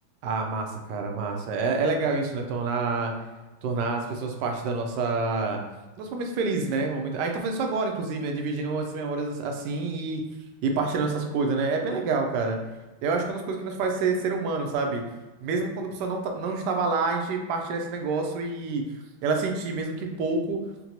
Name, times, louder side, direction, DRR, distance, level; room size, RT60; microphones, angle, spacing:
voice 1, 0.2-3.1 3.6-5.6 6.0-10.2 10.6-12.6 13.0-15.0 15.4-18.8 19.2-20.6, right 4 dB, 75° right, 3 dB, 1.0 m, -27 dB
3.9 x 2.2 x 2.8 m, 1.2 s
omnidirectional pair, 2.2 m